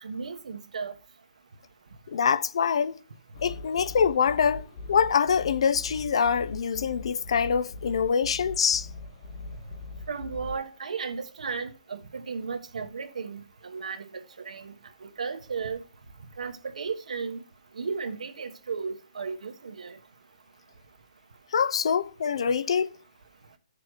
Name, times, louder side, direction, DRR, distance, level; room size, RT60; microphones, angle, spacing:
voice 1, 0.0-0.9 10.1-14.1 14.4-14.7 15.2-15.8 16.4-17.4 17.8-20.0, right 5 dB, 85° right, 1.3 m, -34 dB
voice 2, 2.1-3.0 3.4-8.9 21.5-22.9, left 6 dB, 50° left, 0.6 m, -25 dB
sound 1, 3.3-10.6, left 3 dB, 30° left, 1.7 m, -41 dB
15.0 x 6.8 x 3.2 m
hypercardioid pair, 175°, 4 cm